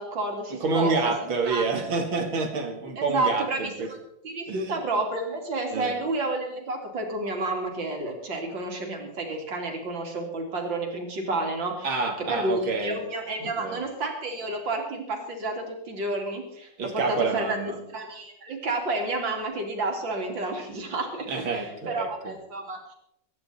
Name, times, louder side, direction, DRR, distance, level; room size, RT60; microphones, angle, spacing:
voice 1, 0.0-1.7 3.0-4.0 4.2-11.9 12.2-17.6 17.9-22.9, right 2 dB, 65° right, 2 dB, 3.8 m, -30 dB
voice 2, 0.6-3.9 4.5-4.8 5.7-5.9 11.8-13.0 13.4-13.8 16.8-17.8 21.3-22.3, right 4 dB, 85° right, 5 dB, 3.0 m, -28 dB
24.0 x 11.0 x 4.3 m, 0.78 s
omnidirectional pair, 2.2 m